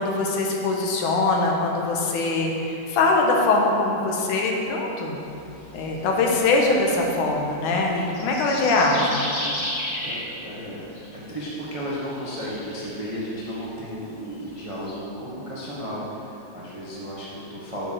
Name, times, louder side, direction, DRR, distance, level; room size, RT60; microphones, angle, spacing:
voice 1, 0.0-5.2 5.7-9.3, left 3 dB, 80° left, 0 dB, 2.6 m, -22 dB
sound 1, 5.2-7.8 8.1-10.3 10.9-11.2 11.5-13.7 14.3-15.0, left 1 dB, 35° left, 1.0 m, -34 dB
voice 2, 8.4-9.1 9.6-10.8 11.3-17.9, equal, 30° right, -7 dB, 0.5 m, -34 dB
8.2 x 7.2 x 6.5 m, 2.8 s
omnidirectional pair, 3.6 m